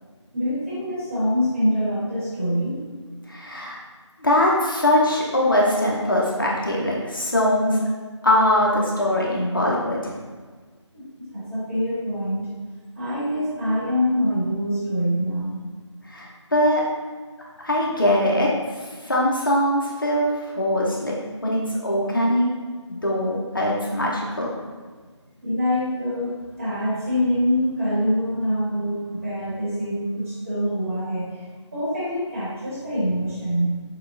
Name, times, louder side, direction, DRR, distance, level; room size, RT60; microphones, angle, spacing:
voice 1, 0.3-2.8 10.9-12.5 12.9-15.6 25.4-31.4 31.7-33.8, equal, 25° right, -10 dB, 1.3 m, -25 dB
voice 2, 3.3-3.8 4.2-7.8 8.2-10.1 16.0-16.8 17.6-18.5 18.8-21.1 21.4-22.5 22.9-24.5, left 1 dB, 45° left, -3 dB, 0.7 m, -22 dB
6.3 x 2.3 x 2.5 m, 1.5 s
figure-of-eight pair, 165°, 16 cm